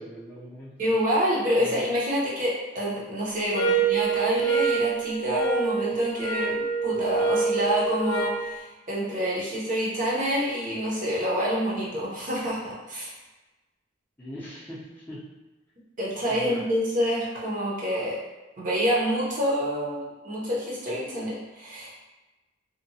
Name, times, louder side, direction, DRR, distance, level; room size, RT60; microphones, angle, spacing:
voice 1, 0.0-1.0 1.6-1.8 14.2-15.3 16.3-16.7, equal, 10° left, -9 dB, 0.5 m, -41 dB
voice 2, 0.8-6.6 6.8-12.6 12.9-13.1 16.0-18.2 18.6-21.9, equal, 45° right, -6 dB, 0.7 m, -27 dB
sound 1, 3.5-8.5, right 5 dB, 70° left, 0.4 m, -26 dB
2.8 x 2.1 x 2.6 m, 1.1 s
head